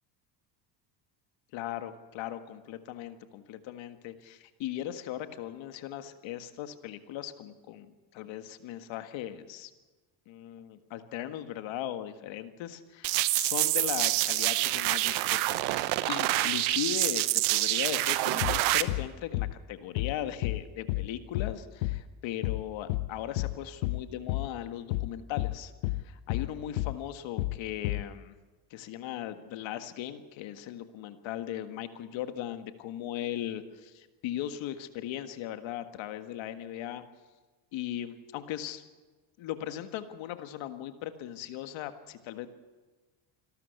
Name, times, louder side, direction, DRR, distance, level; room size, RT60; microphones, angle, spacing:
voice 1, 1.5-9.7 10.3-25.7 26.0-28.3 28.7-37.0 37.7-38.8 39.4-42.5, left 11 dB, 65° left, 9 dB, 1.8 m, -38 dB
sound 1, 13.0-18.8, right 18 dB, 80° right, 1.0 m, -27 dB
sound 2, 18.4-18.6 18.9-19.1 19.3-19.5 20.0-20.2 20.4-20.6 20.9-21.1 21.3-21.5 21.8-22.0 22.4-22.6 22.9-23.1 23.4-23.6 23.8-24.0 24.3-24.5 24.9-25.1 25.4-25.6 25.8-26.0 26.3-26.5 26.8-27.0 27.4-27.6 27.8-28.0, left 18 dB, 85° left, 1.0 m, -30 dB
26.5 x 12.5 x 8.2 m, 1.3 s
supercardioid pair, 100°, 49 cm